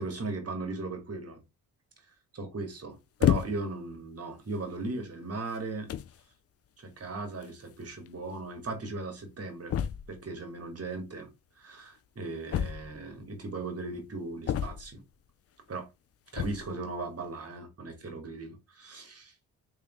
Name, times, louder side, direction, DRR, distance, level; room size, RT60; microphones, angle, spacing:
voice 1, 0.0-1.4 2.3-5.9 6.8-9.8 10.1-11.3 11.6-15.0 15.7-15.9 16.3-19.3, right 3 dB, 40° right, 1.7 m, -38 dB
sound 1, 3.2-3.8 4.6-4.7 5.5-5.6 5.9-6.2 7.4-7.5 7.7-7.8 8.1-8.2 9.7-10.2 12.5-13.2 14.5-15.1 16.3-16.8, left 10 dB, 40° left, 0.4 m, -29 dB
3.4 x 3.3 x 3.1 m
supercardioid pair, 55°, 38 cm